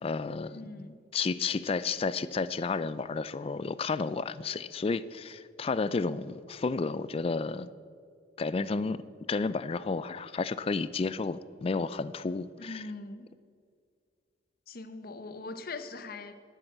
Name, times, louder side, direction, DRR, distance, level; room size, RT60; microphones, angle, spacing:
voice 1, 0.0-0.9 1.1-7.7 8.4-9.0 9.3-12.9, left 4 dB, 30° left, 16 dB, 0.3 m, -32 dB
voice 2, 0.5-1.0 12.6-13.3 14.7-16.3, left 3 dB, 50° left, 10 dB, 0.8 m, -41 dB
11.0 x 7.9 x 7.8 m, 2.2 s
head